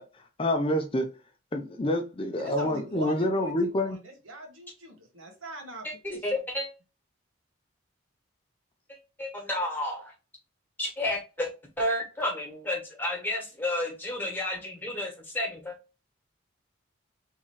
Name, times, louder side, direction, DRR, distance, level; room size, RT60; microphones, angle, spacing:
voice 1, 0.4-1.1 1.5-4.0, left 1 dB, 25° left, 0.6 m, -27 dB
voice 2, 2.4-6.3, equal, 80° right, 1.5 m, -42 dB
voice 3, 6.0-6.7 9.2-10.1 10.8-11.5 11.8-15.7, left 1 dB, 10° left, 1.5 m, -31 dB
3.7 x 3.0 x 4.4 m
head